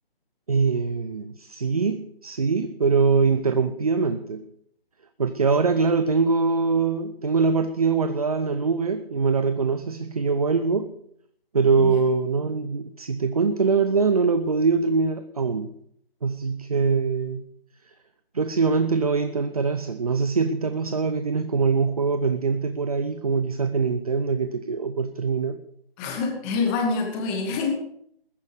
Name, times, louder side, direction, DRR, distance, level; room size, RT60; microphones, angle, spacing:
voice 1, 0.5-4.5 5.2-10.9 11.5-15.7 16.2-17.5 18.3-25.6, right 4 dB, 40° right, 12 dB, 0.8 m, -23 dB
voice 2, 26.0-27.7, left 4 dB, 10° left, 2 dB, 2.2 m, -26 dB
21.0 x 10.5 x 5.2 m, 0.69 s
figure-of-eight pair, 150°, 30 cm